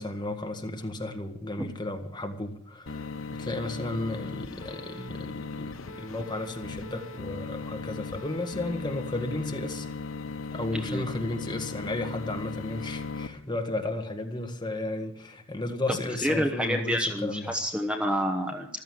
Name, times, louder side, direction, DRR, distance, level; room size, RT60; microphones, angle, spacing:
voice 1, 0.0-9.9 10.5-17.5, left 2 dB, 20° left, 4 dB, 1.7 m, -34 dB
sound 1, 2.9-13.3, left 4 dB, 85° left, 1.0 m, -38 dB
voice 2, 16.2-18.7, equal, 5° right, 4 dB, 1.0 m, -28 dB
15.0 x 13.0 x 6.5 m, 0.68 s
head